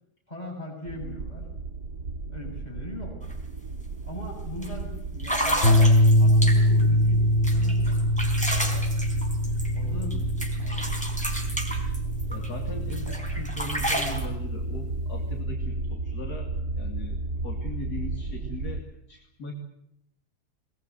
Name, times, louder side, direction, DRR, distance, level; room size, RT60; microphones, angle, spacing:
voice 1, 0.3-1.5 2.3-3.2 4.0-5.7 6.2-8.5 9.7-11.1, left 1 dB, 25° left, 1 dB, 7.0 m, -40 dB
sound 1, 0.9-18.8, right 3 dB, 70° right, 2.1 m, -33 dB
sound 2, 3.2-3.3 3.7-4.0 4.6-4.7 5.2-6.8 7.4-10.1 10.4-12.5 12.9-14.3, equal, 5° left, 4.2 m, -31 dB
sound 3, 5.6-14.0, left 1 dB, 45° left, 3.2 m, -23 dB
voice 2, 12.3-19.5, left 1 dB, 70° left, 3 dB, 2.9 m, -39 dB
20.5 x 20.5 x 9.3 m, 0.75 s
omnidirectional pair, 1.8 m